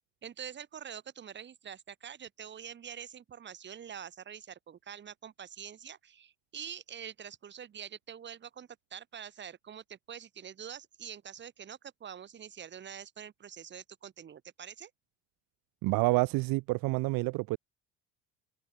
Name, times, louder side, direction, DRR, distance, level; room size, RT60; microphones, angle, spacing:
voice 1, 0.2-14.9, right 8 dB, 30° right, 2.1 m, -45 dB
voice 2, 15.8-17.6, right 23 dB, 65° right, 0.6 m, -28 dB
open air
cardioid pair, 165°, 37 cm